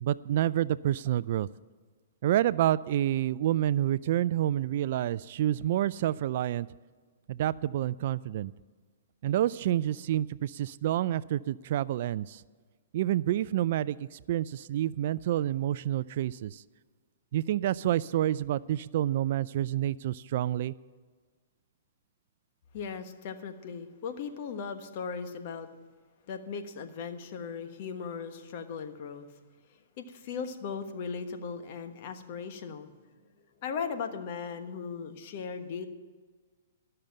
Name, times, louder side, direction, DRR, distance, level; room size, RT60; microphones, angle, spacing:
voice 1, 0.0-1.5 2.2-6.7 7.3-8.5 9.2-12.4 12.9-16.6 17.3-20.7, right 12 dB, 55° right, 19 dB, 0.3 m, -28 dB
voice 2, 22.7-25.7 26.3-29.4 29.7-33.1 33.6-35.9, left 6 dB, 50° left, 7 dB, 1.3 m, -38 dB
12.5 x 6.7 x 8.8 m, 1.4 s
hypercardioid pair, 130°, 0 cm